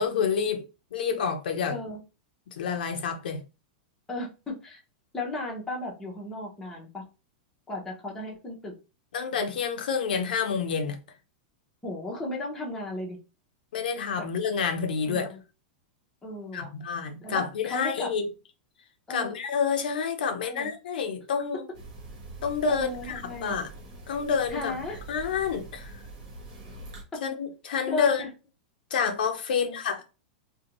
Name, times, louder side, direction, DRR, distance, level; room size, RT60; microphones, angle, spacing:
voice 1, 0.0-1.8 2.5-3.4 9.1-11.0 13.7-15.3 16.5-18.2 19.1-21.7 22.4-23.7 24.1-24.8 25.1-26.0 27.2-28.2 28.9-30.0, left 6 dB, 80° left, 0.5 m, -28 dB
voice 2, 1.7-2.0 4.1-4.8 5.1-7.0 7.7-8.7 11.8-13.2 14.2-14.3 15.1-15.4 16.2-16.7 17.2-18.1 19.1-19.3 20.4-20.7 22.7-23.6 24.5-25.0 27.1-27.2 27.8-28.3 29.5-29.8, left 2 dB, 10° left, 0.8 m, -35 dB
sound 1, 21.7-27.0, right 2 dB, 60° right, 1.2 m, -44 dB
2.5 x 2.2 x 2.9 m
supercardioid pair, 155°, 5 cm